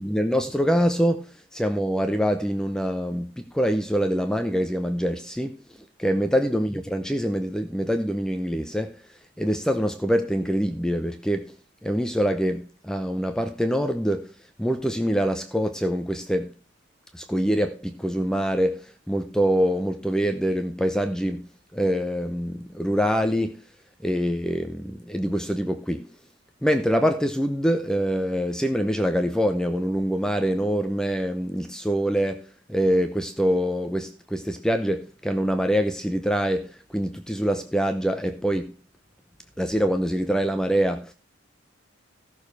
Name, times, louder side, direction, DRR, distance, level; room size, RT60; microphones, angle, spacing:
voice 1, 0.0-5.6 6.0-9.0 9.4-11.5 11.8-14.3 14.6-16.5 17.1-23.6 24.0-26.1 26.6-38.7 39.6-41.1, equal, 5° left, 0.7 m, -25 dB
15.0 x 6.7 x 4.7 m
head